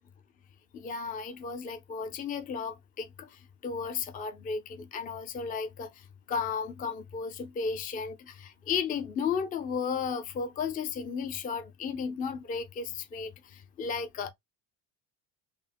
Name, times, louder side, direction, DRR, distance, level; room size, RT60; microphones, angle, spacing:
voice 1, 0.7-14.3, left 6 dB, 25° left, 0.4 m, -34 dB
3.6 x 2.0 x 2.5 m
cardioid pair, 155°, 37 cm